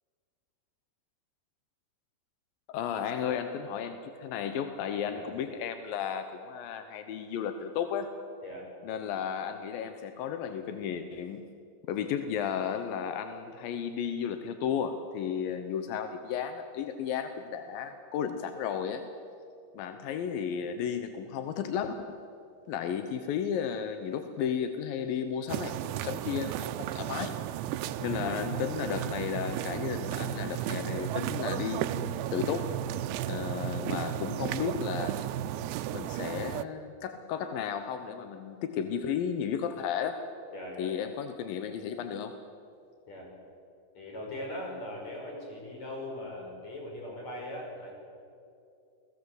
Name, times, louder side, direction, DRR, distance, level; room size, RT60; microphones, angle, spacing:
voice 1, 2.7-8.1 8.8-11.5 11.9-19.0 19.7-22.2 22.7-27.4 28.0-32.7 33.3-35.2 35.9-40.2 40.8-42.4, left 8 dB, 70° left, 8 dB, 2.3 m, -34 dB
sound 1, 25.5-36.6, right 13 dB, 85° right, 3.0 m, -35 dB
sound 2, 28.1-35.6, right 6 dB, 25° right, 2.5 m, -39 dB
voice 2, 40.5-40.9 43.1-43.3 43.9-47.9, left 1 dB, 40° left, 0 dB, 6.7 m, -40 dB
29.0 x 19.5 x 8.0 m, 2.6 s
omnidirectional pair, 5.2 m